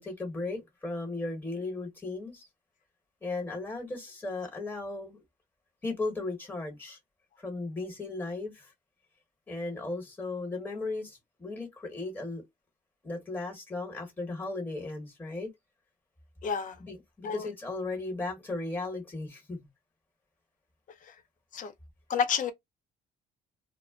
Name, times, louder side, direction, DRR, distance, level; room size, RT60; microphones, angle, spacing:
voice 1, 0.0-2.5 3.2-5.2 5.8-7.0 7.4-8.7 9.5-12.4 13.0-15.5 16.8-19.6, left 3 dB, 10° left, 1.3 m, -36 dB
voice 2, 16.4-16.8 17.2-17.5 21.5-21.7 22.1-22.5, left 6 dB, 50° left, 0.6 m, -29 dB
2.1 x 2.0 x 3.6 m
cardioid pair, 110°, 17 cm